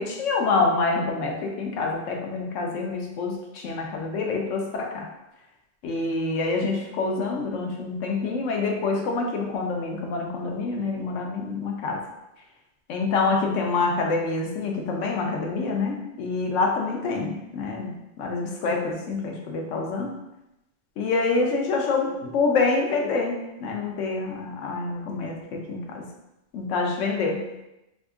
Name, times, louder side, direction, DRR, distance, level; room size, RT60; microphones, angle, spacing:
voice 1, 0.0-5.1 5.8-12.0 12.9-20.1 21.0-26.1 26.5-27.4, left 3 dB, 85° left, 1 dB, 1.0 m, -26 dB
2.8 x 2.5 x 3.5 m, 0.92 s
omnidirectional pair, 1.3 m